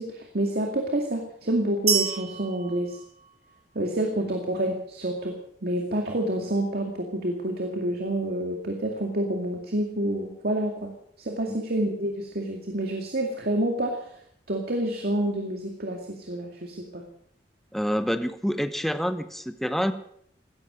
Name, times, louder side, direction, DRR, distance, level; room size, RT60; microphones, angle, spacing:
voice 1, 0.0-3.0 3.7-10.9 11.2-14.1 14.5-17.0, right 1 dB, 60° right, 2 dB, 2.3 m, -28 dB
sound 1, 1.9-3.8, right 8 dB, 40° right, 3.4 m, -29 dB
voice 2, 17.7-19.9, equal, ahead, 10 dB, 0.9 m, -27 dB
16.5 x 13.5 x 6.3 m, 0.67 s
head